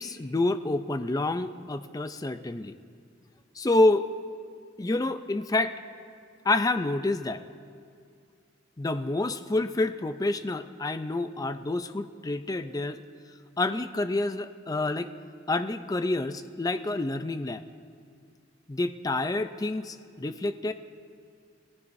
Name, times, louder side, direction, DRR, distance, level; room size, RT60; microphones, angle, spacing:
voice 1, 0.0-2.8 3.6-4.1 4.8-5.7 6.4-7.4 8.8-13.0 13.6-15.1 15.5-17.6 18.7-20.7, left 2 dB, 20° left, 10 dB, 0.4 m, -28 dB
28.5 x 15.0 x 2.6 m, 2.3 s
head